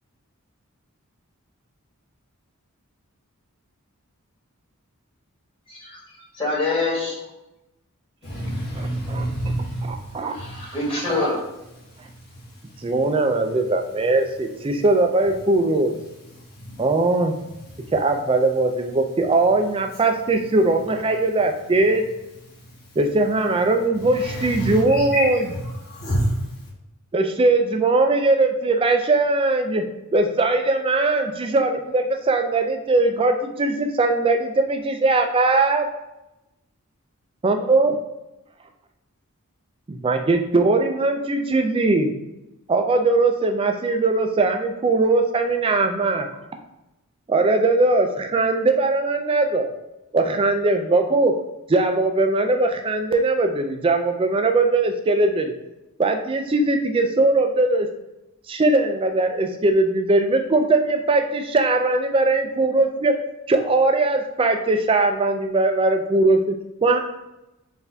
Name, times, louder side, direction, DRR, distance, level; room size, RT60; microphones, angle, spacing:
voice 1, 5.7-6.0 6.3-7.2 10.2-11.4, left 3 dB, 25° left, -7 dB, 1.5 m, -25 dB
voice 2, 8.2-10.7 12.0-12.4 12.7-12.8 16.3-16.8 17.7-17.9 24.0-26.4, equal, 45° left, -6 dB, 1.5 m, -28 dB
voice 3, 8.8-9.3 10.1-10.3 11.1-11.3 12.8-16.0 16.8-17.4 17.9-22.0 23.0-25.4 27.1-35.9 37.4-37.9 39.9-42.1 42.7-46.3 47.3-49.7 50.1-51.4 51.7-55.6 56.0-57.9 58.5-63.2 63.5-67.0, right 2 dB, 25° right, 6 dB, 0.3 m, -20 dB
4.3 x 2.6 x 3.4 m, 0.95 s
head